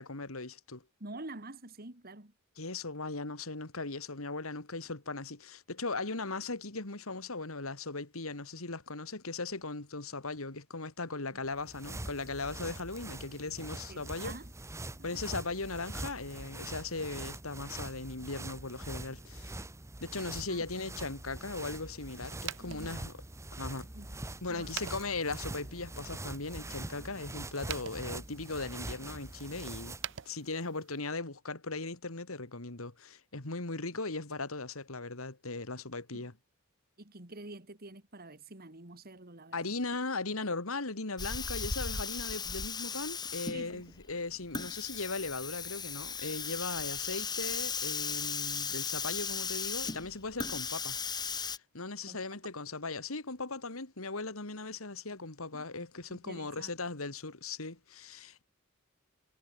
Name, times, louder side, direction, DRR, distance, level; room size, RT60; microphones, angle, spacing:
voice 1, 0.0-0.8 2.6-14.3 15.0-19.6 20.0-23.1 23.5-23.9 24.4-30.0 30.2-36.3 39.5-51.0 51.5-58.4, left 3 dB, 75° left, 2.5 m, -38 dB
voice 2, 1.0-2.3 11.3-11.4 13.9-14.5 14.9-15.2 20.5-20.6 22.6-23.1 23.9-24.2 24.5-24.8 36.1-36.3 37.0-39.7 43.5-44.0 52.1-52.2 55.5-55.6 56.1-56.7, right 2 dB, 45° right, 2.9 m, -48 dB
sound 1, 11.4-30.2, right 2 dB, 15° right, 1.0 m, -44 dB
sound 2, 22.3-31.0, right 11 dB, 60° right, 0.8 m, -48 dB
Hiss, 41.2-51.6, left 5 dB, 20° left, 1.4 m, -37 dB
head